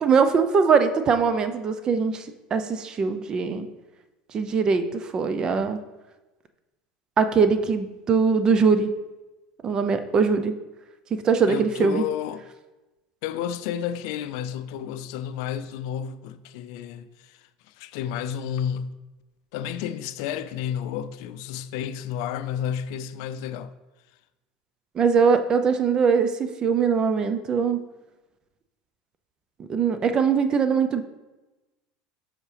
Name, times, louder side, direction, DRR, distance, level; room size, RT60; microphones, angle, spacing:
voice 1, 0.0-3.7 4.3-5.8 7.2-8.9 9.6-10.5 11.1-12.0 24.9-27.9 29.7-31.0, right 5 dB, 35° right, 0.6 m, -22 dB
voice 2, 11.4-12.4 13.2-19.0 19.5-23.7, left 9 dB, 75° left, 0.4 m, -31 dB
7.2 x 5.7 x 3.3 m
supercardioid pair, 110°, 2 cm